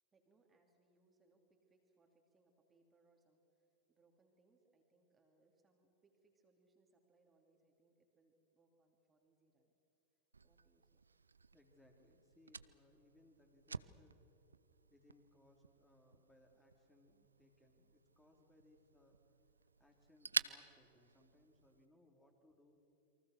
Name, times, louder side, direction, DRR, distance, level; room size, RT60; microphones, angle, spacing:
voice 1, 0.1-9.7 10.4-11.0, right 3 dB, 15° right, 2 dB, 3.1 m, -75 dB
Fire, 10.3-21.9, right 4 dB, 75° right, 0.5 m, -49 dB
voice 2, 11.5-14.2 14.9-19.2 19.8-22.8, left 1 dB, 10° left, 1 dB, 3.1 m, -69 dB
28.5 x 24.0 x 6.5 m, 2.9 s
figure-of-eight pair, 90°, 0 cm